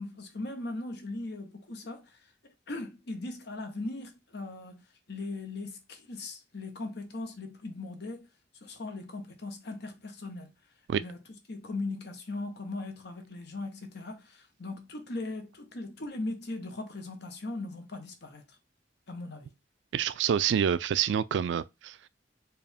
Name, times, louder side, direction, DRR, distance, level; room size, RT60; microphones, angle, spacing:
voice 1, 0.0-2.2 2.7-4.8 5.1-8.3 8.6-10.5 11.0-11.2 11.5-18.4 19.1-19.5, left 2 dB, 60° left, 1.0 m, -39 dB
voice 2, 19.9-22.1, right 8 dB, 70° right, 0.3 m, -27 dB
4.5 x 2.5 x 3.4 m
head